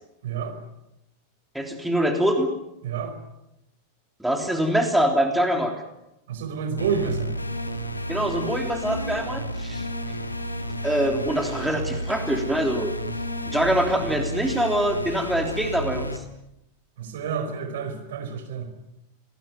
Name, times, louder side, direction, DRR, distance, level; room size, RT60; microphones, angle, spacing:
voice 1, 0.2-0.6 2.8-3.2 6.3-7.3 17.0-18.7, right 6 dB, 55° right, 8 dB, 4.9 m, -29 dB
voice 2, 1.5-2.5 4.2-5.7 8.1-9.9 10.8-12.9 13.5-16.1, right 1 dB, 5° right, 4 dB, 3.4 m, -24 dB
sound 1, 6.8-16.2, equal, 80° left, 2.5 m, -31 dB
27.5 x 19.0 x 9.4 m, 0.87 s
figure-of-eight pair, 90°, 0 cm